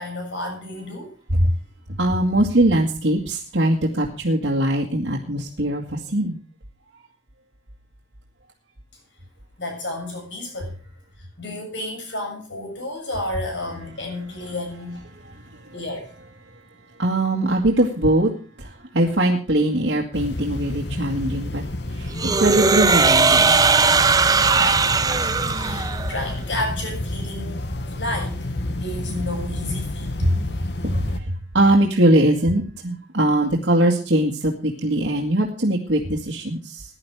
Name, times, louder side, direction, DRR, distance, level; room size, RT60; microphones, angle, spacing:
voice 1, 0.0-1.1 9.6-10.7 11.4-15.0 15.7-16.1 24.4-28.4 28.8-30.1, left 1 dB, 90° left, 3 dB, 6.9 m, -31 dB
voice 2, 2.0-6.4 17.0-18.3 18.6-21.6 22.0-23.5 30.2-30.4 30.8-30.9 31.5-36.8, right 1 dB, 90° right, -1 dB, 2.0 m, -21 dB
sound 1, 20.1-31.2, left 1 dB, 70° left, 1.4 m, -30 dB
sound 2, 22.2-26.2, right 4 dB, 20° right, 0.6 m, -18 dB
16.0 x 11.0 x 4.8 m, 0.39 s
head